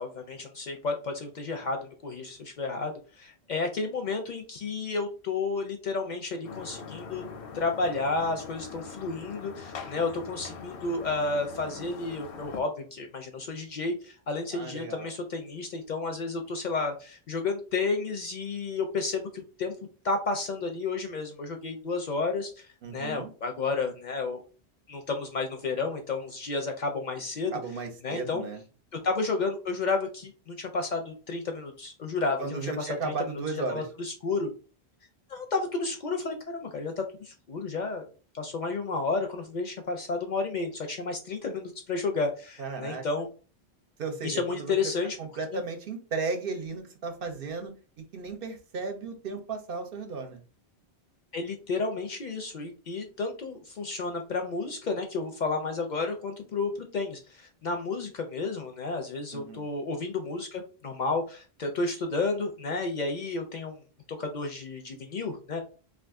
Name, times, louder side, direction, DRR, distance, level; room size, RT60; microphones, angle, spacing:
voice 1, 0.0-7.2 7.5-19.7 20.0-24.4 24.9-27.5 28.0-28.4 29.0-33.1 33.5-34.5 35.3-38.1 38.3-43.3 44.2-45.2 45.5-45.6 51.3-63.8 64.1-65.6, left 3 dB, 55° left, 4 dB, 0.6 m, -31 dB
sound 1, 6.4-12.6, left 5 dB, 85° left, 0.9 m, -42 dB
voice 2, 14.5-15.1 22.8-23.3 27.5-28.6 32.4-33.9 42.6-43.0 44.0-44.8 45.2-47.7 48.1-50.4 59.3-59.7, right 4 dB, 65° right, 5 dB, 0.8 m, -35 dB
2.5 x 2.4 x 3.5 m, 0.36 s
omnidirectional pair, 1.1 m